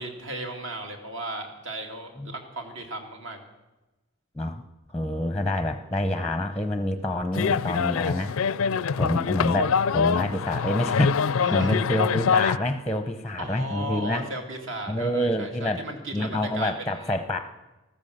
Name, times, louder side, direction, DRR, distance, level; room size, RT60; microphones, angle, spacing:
voice 1, 0.0-3.4 11.4-11.7 13.4-17.1, right 1 dB, 60° right, 3 dB, 2.4 m, -35 dB
voice 2, 4.9-8.3 8.9-14.2 14.9-15.8 16.1-17.4, left 1 dB, 5° left, 8 dB, 0.7 m, -27 dB
sound 1, 7.3-12.6, left 6 dB, 75° left, 0.4 m, -24 dB
14.0 x 14.0 x 6.7 m, 1.1 s
head